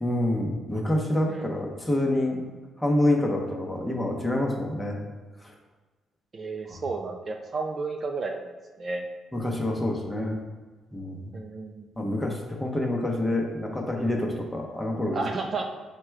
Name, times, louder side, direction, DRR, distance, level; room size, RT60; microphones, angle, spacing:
voice 1, 0.0-2.4 2.8-5.0 5.4-5.5 6.7-6.8 9.3-10.4 10.9-11.3 11.9-15.2, left 1 dB, 10° left, 0 dB, 0.8 m, -27 dB
voice 2, 6.3-9.0 11.3-11.9 15.1-15.6, right 3 dB, 40° right, 3 dB, 0.4 m, -32 dB
4.9 x 2.2 x 4.6 m, 1.3 s
cardioid pair, 90°, 0 cm